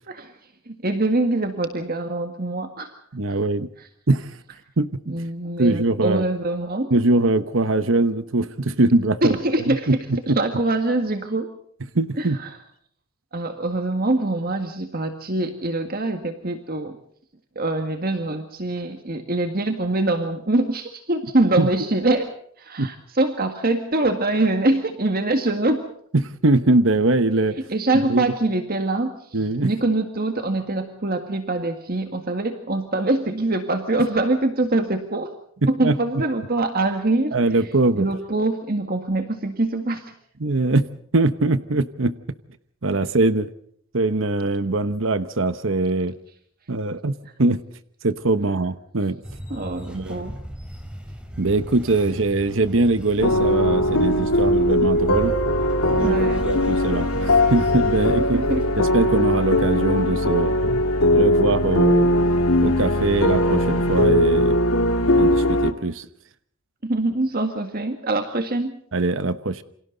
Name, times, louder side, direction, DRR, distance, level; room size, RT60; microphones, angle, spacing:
voice 1, 0.7-2.9 3.3-3.4 3.8-3.9 5.1-6.9 9.2-10.0 10.3-11.5 12.2-12.6 13.3-17.0 17.6-22.3 22.6-25.8 27.7-35.3 35.7-37.6 38.0-40.1 47.2-47.3 49.5-50.4 56.0-56.4 58.3-58.6 66.8-68.8, right 2 dB, 45° right, 6 dB, 1.9 m, -24 dB
voice 2, 3.1-3.7 4.1-4.3 4.8-5.2 5.6-6.2 6.9-9.3 9.7-10.4 11.9-12.4 21.6-21.7 22.8-22.9 26.1-27.6 28.1-28.3 29.3-29.7 35.8-36.0 37.3-38.1 40.4-42.2 42.8-43.5 43.9-46.1 46.7-47.1 47.4-47.6 48.0-49.2 49.9-50.3 51.4-55.3 55.9-56.2 56.4-58.4 58.8-60.5 61.1-62.1 62.6-64.6 65.2-66.1 68.9-69.6, right 2 dB, 60° right, 12 dB, 1.0 m, -22 dB
sound 1, 49.2-58.6, equal, 5° right, 3.8 m, -37 dB
sound 2, 53.2-65.7, left 1 dB, 80° left, 2.3 m, -20 dB
29.0 x 26.0 x 4.0 m, 0.64 s
head